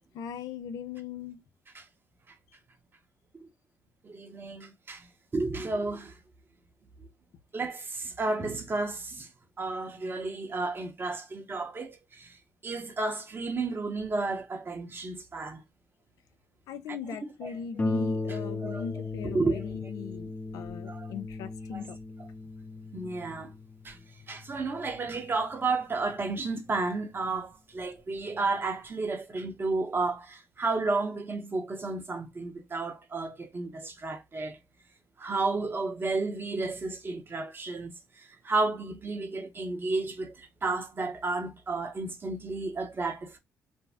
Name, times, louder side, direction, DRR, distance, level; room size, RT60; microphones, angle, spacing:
voice 1, 0.1-1.4 16.7-22.0, left 7 dB, 70° left, 0.4 m, -39 dB
voice 2, 4.0-5.1 5.3-6.1 7.5-9.3 9.6-12.3 12.6-15.6 16.9-17.0 17.4-17.6 18.3-18.9 19.2-19.8 20.9-21.1 21.7-21.8 22.9-23.5 23.8-24.0 24.3-34.6 35.2-40.3 40.6-43.4, right 3 dB, 35° right, 0.9 m, -32 dB
Harp, 17.8-27.0 27.8-27.9 28.4-28.5, left 3 dB, 25° left, 0.6 m, -37 dB
2.6 x 2.0 x 3.3 m
supercardioid pair, 55°, 6 cm